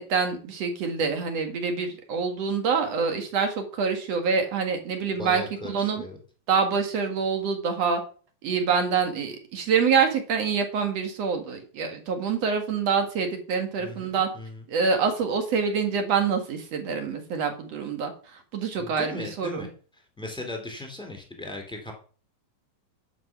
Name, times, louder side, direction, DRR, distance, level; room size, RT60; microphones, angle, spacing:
voice 1, 0.0-6.0 6.5-8.0 8.4-14.3 14.7-18.1 18.5-19.7, right 5 dB, 50° right, 5 dB, 2.6 m, -26 dB
voice 2, 5.2-6.2 13.8-14.6 18.8-19.7 20.2-21.9, left 2 dB, ahead, 2 dB, 2.6 m, -38 dB
11.0 x 6.4 x 6.0 m, 0.40 s
omnidirectional pair, 4.0 m